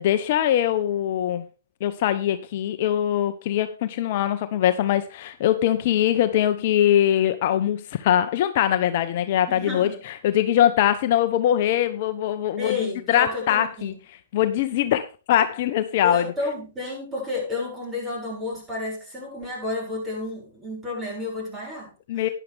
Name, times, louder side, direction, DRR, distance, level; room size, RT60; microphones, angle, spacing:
voice 1, 0.0-1.4 1.8-13.9 14.3-16.3 22.1-22.3, left 11 dB, 50° left, 9 dB, 1.0 m, -22 dB
voice 2, 9.5-10.0 12.6-14.0 16.0-22.3, left 3 dB, 15° right, -1 dB, 7.3 m, -31 dB
12.0 x 10.5 x 3.6 m, 0.32 s
hypercardioid pair, 125°, 0 cm